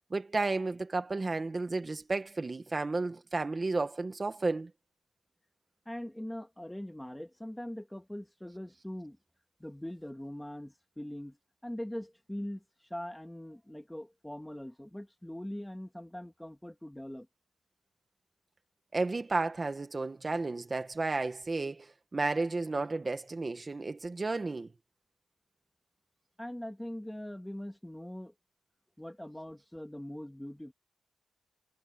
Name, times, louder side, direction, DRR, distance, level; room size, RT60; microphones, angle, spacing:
voice 1, 0.1-4.7 18.9-24.7, right 3 dB, 25° right, 1.6 m, -32 dB
voice 2, 5.9-9.2 9.6-11.4 11.6-17.3 26.4-28.3 29.0-30.7, left 1 dB, 5° left, 2.0 m, -42 dB
wide cardioid pair, 135°, 0 cm